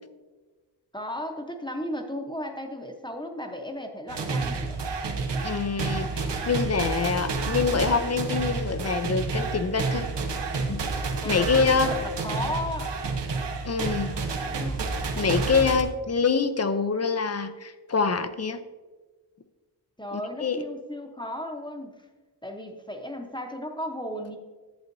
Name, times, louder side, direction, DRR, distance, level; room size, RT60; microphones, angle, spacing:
voice 1, 0.9-4.8 11.2-12.9 14.4-14.9 20.0-21.9 22.4-24.4, left 1 dB, 10° left, 3 dB, 0.8 m, -35 dB
sound 1, 4.1-15.8, right 4 dB, 80° right, 1.0 m, -29 dB
voice 2, 5.4-10.1 10.7-10.8 11.3-11.9 13.6-14.2 15.2-18.6 20.1-20.6, left 5 dB, 40° left, 10 dB, 0.5 m, -25 dB
11.0 x 7.9 x 2.7 m, 1.3 s
wide cardioid pair, 110°, 41 cm